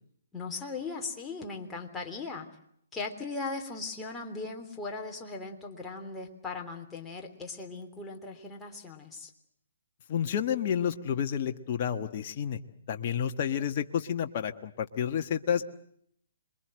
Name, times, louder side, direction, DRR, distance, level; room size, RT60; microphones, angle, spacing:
voice 1, 0.3-2.5 2.9-9.3, left 3 dB, 10° left, 0 dB, 3.4 m, -38 dB
voice 2, 10.1-12.6 12.9-15.7, left 8 dB, 45° left, 5 dB, 1.4 m, -30 dB
27.0 x 22.5 x 7.8 m, 0.69 s
figure-of-eight pair, 135°, 0 cm